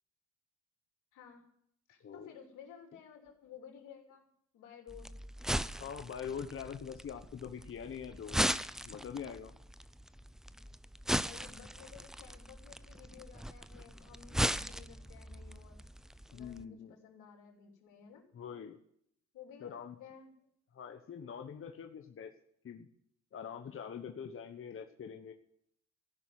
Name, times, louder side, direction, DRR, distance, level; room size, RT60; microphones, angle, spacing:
voice 1, 1.1-1.4 1.9-4.3 4.5-5.1 11.1-15.8 16.3-18.2 19.3-20.5, left 7 dB, 85° left, 1 dB, 3.2 m, -54 dB
voice 2, 2.0-2.3 5.8-8.4 8.8-9.5 16.3-16.9 18.3-18.8 19.6-20.0 20.7-22.3 22.6-22.9 23.3-25.3, left 7 dB, 45° left, 5 dB, 1.1 m, -44 dB
sound 1, 4.9-16.6, equal, ahead, 0.4 m, -38 dB
15.0 x 6.2 x 9.3 m, 0.72 s
cardioid pair, 90°, 30 cm